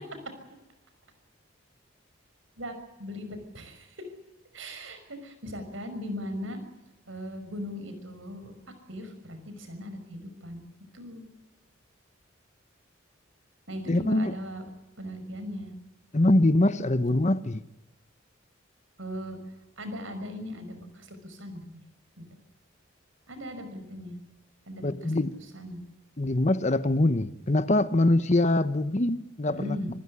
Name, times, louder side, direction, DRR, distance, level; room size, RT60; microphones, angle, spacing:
voice 1, 2.6-4.1 4.5-6.6 7.1-8.5 8.9-10.6 10.9-11.3 13.7-14.6 15.0-15.7 19.0-19.4 19.8-21.8 22.2-22.3 23.3-24.2 24.7-25.1 25.5-25.8 29.5-29.9, equal, 70° right, 8 dB, 5.9 m, -38 dB
voice 2, 13.9-14.4 16.1-17.6 24.8-25.3 26.2-29.8, left 1 dB, 35° left, 14 dB, 0.9 m, -23 dB
26.0 x 15.5 x 9.8 m, 0.98 s
head